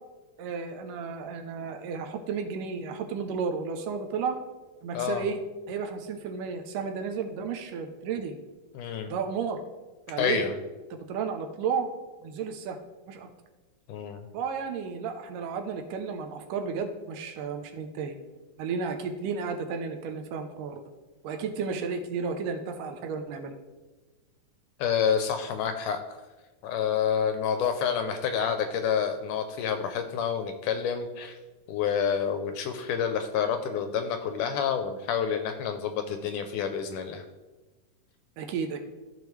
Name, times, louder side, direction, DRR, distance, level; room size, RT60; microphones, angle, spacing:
voice 1, 0.4-4.4 4.8-5.4 5.7-8.4 9.1-9.6 10.1-10.5 10.9-11.9 12.2-12.8 13.1-13.3 14.3-18.2 18.6-20.8 21.2-23.5 38.4-38.8, right 5 dB, 80° right, 5 dB, 2.2 m, -33 dB
voice 2, 4.9-5.3 8.7-9.1 10.2-10.5 13.9-14.2 24.8-26.0 26.6-31.4 31.7-37.3, left 7 dB, 80° left, 7 dB, 1.9 m, -28 dB
14.0 x 5.0 x 3.2 m, 1.2 s
omnidirectional pair, 4.0 m